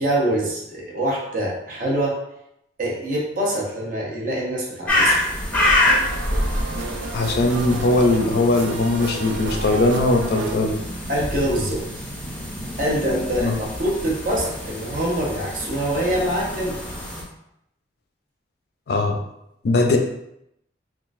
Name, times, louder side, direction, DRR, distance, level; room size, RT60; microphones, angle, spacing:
voice 1, 0.0-2.1 2.8-5.2 11.1-16.8, right 1 dB, 45° right, -3 dB, 0.8 m, -25 dB
sound 1, 4.9-17.2, left 1 dB, 5° left, 0.6 m, -26 dB
sound 2, 5.5-10.6, right 4 dB, 80° right, 0.3 m, -32 dB
voice 2, 7.1-10.7 13.4-13.6 18.9-19.2 19.6-20.0, left 2 dB, 55° left, 4 dB, 0.3 m, -20 dB
3.6 x 2.4 x 2.5 m, 0.81 s
head